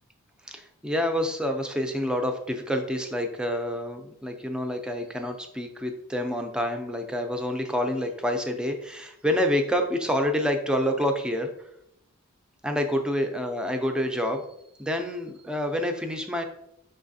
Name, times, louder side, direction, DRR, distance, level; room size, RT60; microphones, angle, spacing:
voice 1, 0.4-11.5 12.6-14.5 14.8-16.4, equal, 5° right, 4 dB, 0.4 m, -28 dB
5.4 x 3.2 x 2.6 m, 0.79 s
head